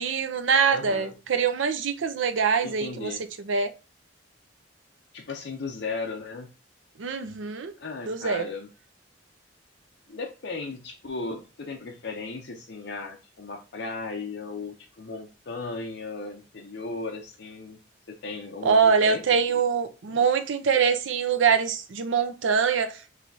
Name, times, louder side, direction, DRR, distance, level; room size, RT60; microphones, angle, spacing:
voice 1, 0.0-3.1 3.4-3.7 7.0-7.7 8.1-8.5 18.6-23.1, right 6 dB, 80° right, 0.6 m, -24 dB
voice 2, 0.7-1.1 2.6-3.2 5.1-6.5 7.8-8.7 10.1-17.8 18.1-19.4 20.1-20.3, left 3 dB, 60° left, 0.6 m, -36 dB
5.3 x 3.2 x 2.7 m
head